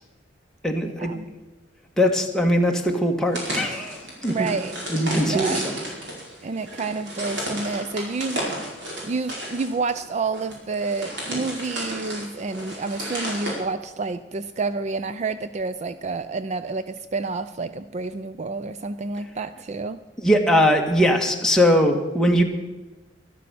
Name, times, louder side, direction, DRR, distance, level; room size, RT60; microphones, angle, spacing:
voice 1, 0.6-1.1 2.0-4.5 4.9-5.8 20.2-22.4, equal, 5° left, 1 dB, 1.5 m, -20 dB
sound 1, 3.3-13.5, right 1 dB, 65° right, 4.9 m, -33 dB
voice 2, 4.3-4.7 5.3-5.7 6.4-8.5 9.1-20.0, right 4 dB, 40° right, 12 dB, 0.4 m, -29 dB
12.5 x 12.0 x 6.9 m, 1.1 s
head